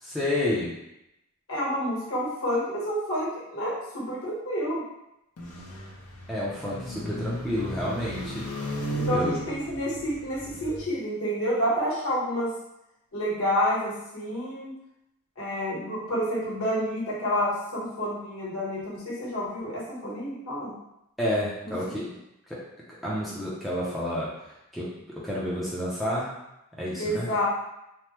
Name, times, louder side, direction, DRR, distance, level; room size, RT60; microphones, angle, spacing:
voice 1, 0.0-0.7 6.3-8.4 9.1-9.3 21.2-22.0 22.5-22.6 23.0-24.3 24.7-24.9 25.2-26.3 26.8-27.3, left 1 dB, ahead, -8 dB, 0.5 m, -29 dB
voice 2, 1.5-4.8 8.9-12.5 13.1-14.7 15.4-20.7 21.6-22.0 27.0-27.5, equal, 75° left, -6 dB, 1.2 m, -29 dB
sound 1, 5.4-10.9, right 1 dB, 90° left, 0.7 m, -35 dB
3.2 x 2.1 x 2.9 m, 0.87 s
head